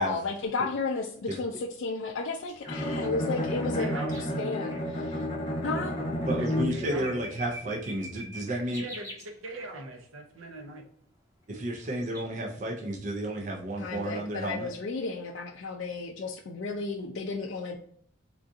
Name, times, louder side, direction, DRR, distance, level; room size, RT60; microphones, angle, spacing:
voice 1, 0.0-4.0 4.4-5.2 5.6-5.9 13.8-17.8, left 3 dB, 60° left, 1 dB, 0.4 m, -33 dB
sound 1, 2.5-4.3 4.7-4.8 5.4-5.5 6.2-9.6 11.7-12.3, equal, 15° right, 0.9 m, -44 dB
Bowed string instrument, 2.7-7.0, left 1 dB, 25° left, 0.8 m, -31 dB
voice 2, 3.4-4.4 6.4-7.2 8.8-10.8, right 2 dB, 75° right, 4 dB, 0.7 m, -41 dB
voice 3, 6.3-8.8 11.5-14.7, right 1 dB, 35° right, 0 dB, 0.5 m, -32 dB
3.7 x 2.4 x 2.6 m, 0.63 s
head